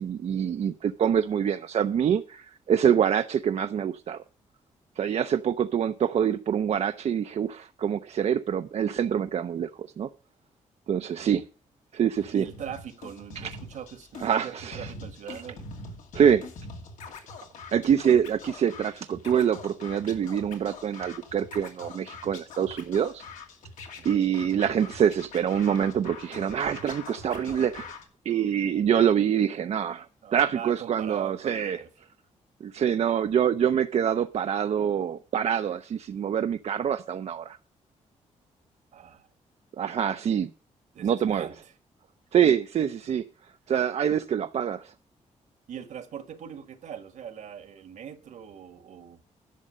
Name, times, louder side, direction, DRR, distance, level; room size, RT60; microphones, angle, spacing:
voice 1, 0.0-4.2 5.0-10.1 10.9-11.4 11.9-12.4 13.4-13.5 14.2-14.9 16.1-16.5 17.7-23.2 24.0-28.0 28.2-31.8 32.6-37.6 39.8-40.5 41.0-41.5 42.3-43.2 43.7-44.9, right 8 dB, 60° right, 0.5 m, -25 dB
Scratching (performance technique), 12.1-28.0, left 3 dB, 90° left, 2.4 m, -44 dB
voice 2, 12.3-15.7 24.0-24.1 30.2-31.9 38.9-39.3 40.9-41.7 45.7-49.2, right 8 dB, 75° right, 1.7 m, -41 dB
11.0 x 6.5 x 6.5 m
cardioid pair, 85°, 13 cm